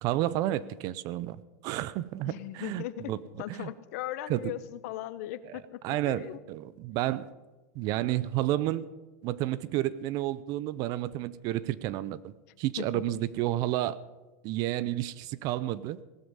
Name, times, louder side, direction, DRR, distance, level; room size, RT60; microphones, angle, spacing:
voice 1, 0.0-3.2 3.5-3.7 4.3-4.5 5.8-7.3 7.7-8.9 9.2-14.0 14.4-16.0, right 14 dB, 40° right, 19 dB, 0.6 m, -31 dB
voice 2, 2.3-3.1 3.4-6.4 12.8-13.0, left 13 dB, 60° left, 14 dB, 0.9 m, -38 dB
18.0 x 12.5 x 5.5 m, 1.2 s
supercardioid pair, 145°, 9 cm